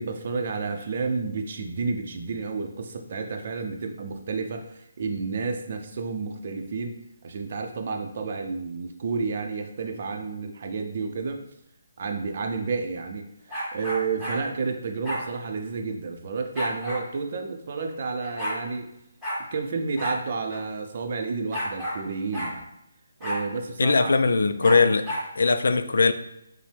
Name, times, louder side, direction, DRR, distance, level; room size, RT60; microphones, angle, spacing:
voice 1, 0.0-7.0 7.2-11.4 12.0-13.2 13.7-18.9 19.5-22.6 23.2-24.6, right 4 dB, 45° right, 4 dB, 0.5 m, -31 dB
sound 1, 13.5-14.4 15.0-15.2 16.6-17.0 17.9-18.0 18.2-18.6 19.2-19.4 20.0-20.2 20.5-20.6 21.5-22.0 22.3-22.5 23.2-23.4 24.6-25.3, equal, 5° left, 1.1 m, -31 dB
voice 2, 23.8-25.1 25.4-26.1, left 4 dB, 70° left, 10 dB, 0.3 m, -20 dB
5.2 x 2.1 x 3.3 m, 0.82 s
hypercardioid pair, 165°, 0 cm